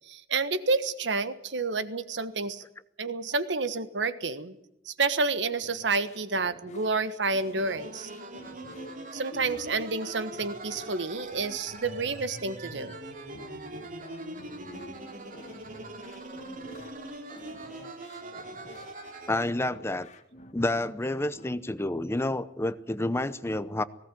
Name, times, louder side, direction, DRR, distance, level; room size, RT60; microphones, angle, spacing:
voice 1, 0.1-2.6 3.0-4.6 4.9-8.1 9.1-13.0, right 3 dB, 85° right, 1.4 m, -29 dB
sound 1, 5.6-21.6, left 1 dB, 40° left, 1.9 m, -50 dB
sound 2, 7.5-19.3, right 2 dB, 50° right, 3.0 m, -42 dB
voice 2, 19.3-20.1 20.5-23.8, left 1 dB, 15° left, 0.7 m, -29 dB
19.5 x 17.0 x 9.3 m
head